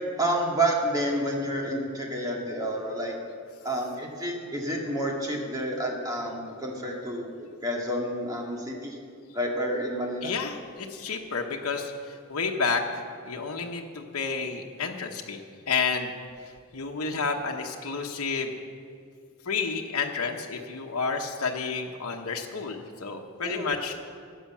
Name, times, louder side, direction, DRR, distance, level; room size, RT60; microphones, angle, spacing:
voice 1, 0.2-3.2 3.6-9.0 9.3-10.3 23.4-23.7, right 1 dB, 15° right, -1 dB, 1.9 m, -29 dB
voice 2, 10.2-15.4 15.7-16.1 16.7-18.5 19.4-23.9, left 5 dB, 75° left, 1 dB, 1.1 m, -30 dB
14.0 x 9.3 x 7.3 m, 2.3 s
head